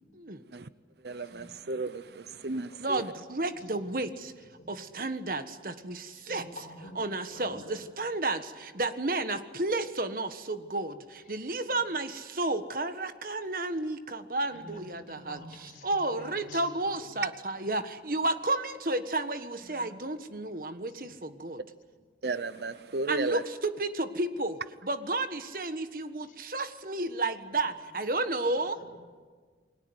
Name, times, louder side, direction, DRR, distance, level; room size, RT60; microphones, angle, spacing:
voice 1, 1.0-3.0 22.2-23.4, right 3 dB, 70° right, 14 dB, 0.7 m, -34 dB
voice 2, 2.8-4.3 4.7-6.4 6.9-21.6 23.1-28.8, right 2 dB, 50° right, 10 dB, 1.5 m, -32 dB
voice 3, 6.1-7.0 7.3-7.8 14.4-16.6 19.6-19.9 21.0-21.1 28.7-29.0, left 1 dB, 50° left, 1 dB, 6.8 m, -48 dB
29.0 x 21.5 x 8.1 m, 1.5 s
head